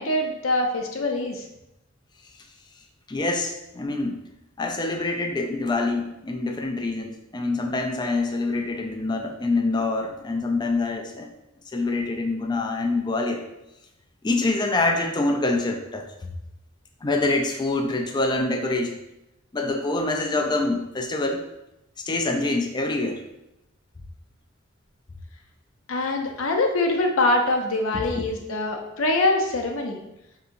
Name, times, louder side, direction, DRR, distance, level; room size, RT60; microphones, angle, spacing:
voice 1, 0.0-1.5 25.9-30.0, left 2 dB, 85° left, 2 dB, 0.6 m, -24 dB
voice 2, 3.1-4.2 4.6-11.3 11.7-13.4 14.2-16.0 17.0-19.0 19.5-21.4 22.1-23.2 27.9-28.2, left 2 dB, 20° left, 4 dB, 0.4 m, -25 dB
5.6 x 2.7 x 2.6 m, 0.88 s
head